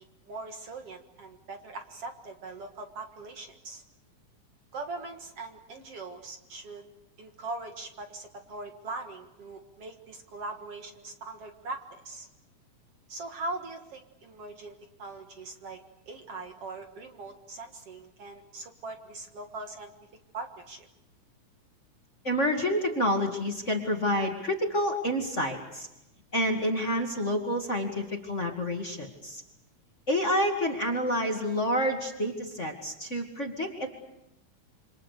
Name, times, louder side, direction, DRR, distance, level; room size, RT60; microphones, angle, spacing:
voice 1, 0.0-3.8 4.7-6.8 7.2-12.3 13.1-15.8 16.1-19.9 20.3-20.9, right 3 dB, 55° right, 5 dB, 2.4 m, -41 dB
voice 2, 22.2-25.9 26.3-29.4 30.1-33.9, equal, 25° left, 2 dB, 2.3 m, -28 dB
28.0 x 26.0 x 6.7 m, 0.92 s
omnidirectional pair, 3.6 m